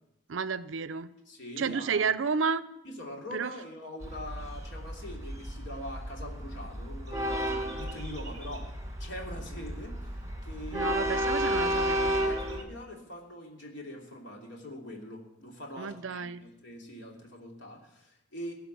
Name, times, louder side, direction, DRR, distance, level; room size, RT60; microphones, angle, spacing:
voice 1, 0.3-1.1 1.6-2.6 3.3-3.5 10.7-12.1 15.8-16.4, right 5 dB, 70° right, 16 dB, 0.5 m, -31 dB
voice 2, 1.3-2.1 2.8-8.7 9.0-18.5, left 1 dB, 60° left, 0 dB, 3.0 m, -43 dB
Train, 4.0-12.6, equal, 15° right, 1.6 m, -32 dB
17.0 x 5.7 x 9.0 m, 0.89 s
head